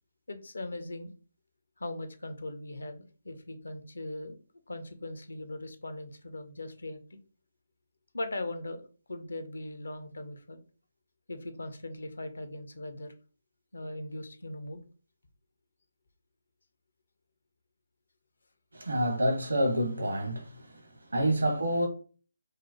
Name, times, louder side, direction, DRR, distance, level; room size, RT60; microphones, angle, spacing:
voice 1, 0.3-1.1 1.8-4.4 4.7-7.2 8.1-10.6 11.3-13.1 13.7-14.8, left 1 dB, 65° left, 0.6 m, -39 dB
voice 2, 18.7-20.7 21.1-21.9, equal, 70° right, 1.1 m, -27 dB
4.9 x 2.0 x 2.8 m
figure-of-eight pair, 145°, 0 cm